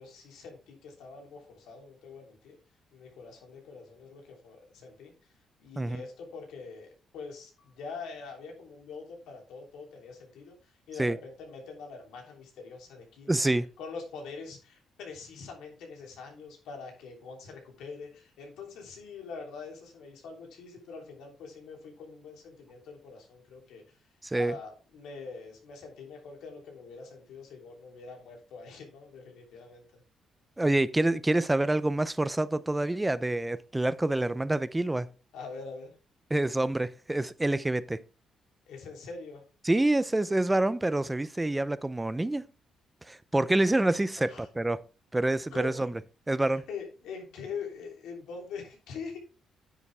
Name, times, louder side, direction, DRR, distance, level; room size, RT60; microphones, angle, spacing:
voice 1, 0.0-2.6 2.9-5.1 5.6-13.4 13.8-23.8 24.3-29.8 35.3-35.9 38.7-39.4 44.2-44.5 45.2-45.9 46.4-49.2, left 5 dB, 85° left, 3.3 m, -44 dB
voice 2, 13.3-13.7 24.2-24.6 30.6-35.1 36.3-38.0 39.6-42.5 43.1-44.8 45.1-45.9 46.3-46.6, right 2 dB, 15° right, 0.6 m, -27 dB
9.8 x 7.2 x 3.5 m
cardioid pair, 90°, 0 cm